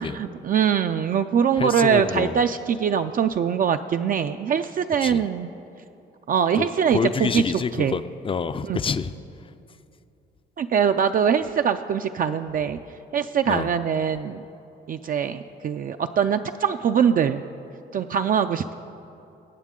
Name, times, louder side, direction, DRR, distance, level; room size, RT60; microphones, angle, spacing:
voice 1, 0.0-5.5 6.3-7.4 7.8-8.0 8.7-8.8 10.6-12.8 13.1-14.4 14.9-17.4 17.9-18.7, right 7 dB, 45° right, 8 dB, 0.4 m, -23 dB
voice 2, 1.6-2.4 5.0-5.2 6.6-9.1 13.5-13.7, left 5 dB, 25° left, 13 dB, 0.4 m, -27 dB
19.5 x 8.3 x 3.7 m, 2.7 s
cardioid pair, 90°, 20 cm